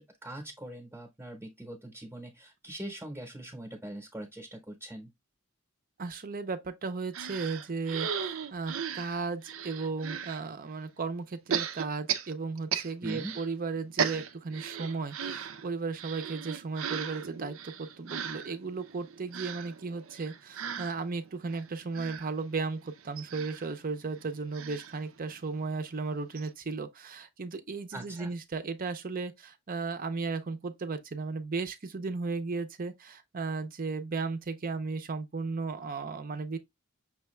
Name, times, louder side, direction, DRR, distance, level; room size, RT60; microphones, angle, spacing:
voice 1, 0.0-5.1 13.0-13.3 27.9-28.3, right 1 dB, 10° right, 0.9 m, -42 dB
voice 2, 6.0-36.6, right 4 dB, 45° right, 0.6 m, -35 dB
sound 1, 7.1-10.4 11.5-13.5 13.8-25.7 26.1-26.2 26.4-26.5, right 7 dB, 85° right, 0.5 m, -37 dB
6.1 x 2.3 x 3.1 m
head